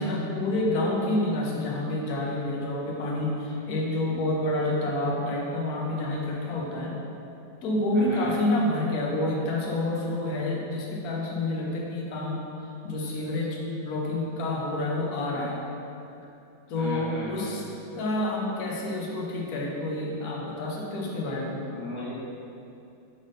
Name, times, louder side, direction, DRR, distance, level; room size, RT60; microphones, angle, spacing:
voice 1, 0.0-7.0 7.6-12.5 12.8-15.6 16.7-17.7 17.9-21.6, left 1 dB, 70° left, -2 dB, 1.3 m, -28 dB
voice 2, 7.9-8.3 16.7-17.6 21.7-22.1, left 2 dB, 20° left, -9 dB, 1.1 m, -36 dB
5.5 x 3.7 x 5.0 m, 2.7 s
omnidirectional pair, 1.7 m